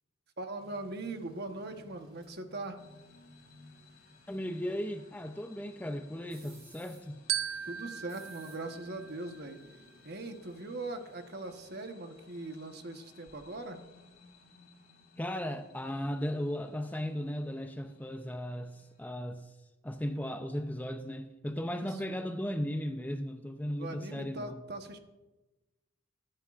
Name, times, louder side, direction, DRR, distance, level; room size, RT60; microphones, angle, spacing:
voice 1, 0.4-2.8 7.6-9.6 10.0-13.8 21.7-22.2 23.8-25.0, right 2 dB, 50° right, 6 dB, 1.1 m, -41 dB
sound 1, 0.6-13.8 14.1-14.3, right 2 dB, 30° right, 3.2 m, -61 dB
sound 2, 2.7-19.1, left 3 dB, 45° left, 3.7 m, -60 dB
voice 2, 4.3-7.2 15.2-19.5 19.8-24.6, equal, 10° left, 7 dB, 0.5 m, -36 dB
Glockenspiel, 7.3-9.8, right 10 dB, 75° right, 0.8 m, -38 dB
22.0 x 11.0 x 2.5 m, 1.1 s
head